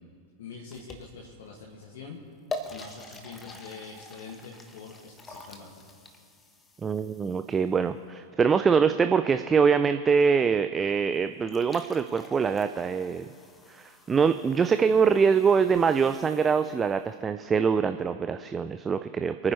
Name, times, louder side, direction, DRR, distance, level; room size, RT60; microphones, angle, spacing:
voice 1, 0.4-2.2 2.7-5.9, left 5 dB, 60° left, -2 dB, 1.9 m, -44 dB
sound 1, 0.7-1.4 2.0-2.1 2.5-7.8 11.1-11.2 11.4-17.0, left 2 dB, 15° left, 1.2 m, -45 dB
voice 2, 6.8-13.3 13.7-19.5, right 6 dB, 20° right, 10 dB, 0.4 m, -24 dB
27.5 x 9.6 x 3.1 m, 2.3 s
figure-of-eight pair, 90°, 0 cm